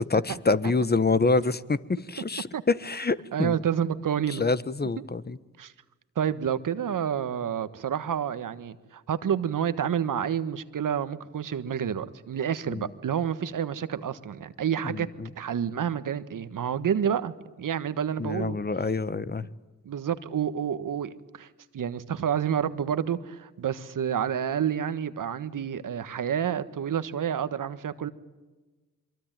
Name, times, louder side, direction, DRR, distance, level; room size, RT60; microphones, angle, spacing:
voice 1, 0.0-3.6 4.4-5.4 12.7-12.9 14.8-15.3 18.2-19.4, left 3 dB, 30° left, 15 dB, 1.4 m, -26 dB
voice 2, 3.3-4.4 5.6-5.7 6.1-15.1 15.4-18.6 19.8-21.5 21.7-28.1, right 8 dB, 65° right, 12 dB, 1.5 m, -29 dB
24.0 x 23.0 x 9.1 m, 1.2 s
supercardioid pair, 45°, 34 cm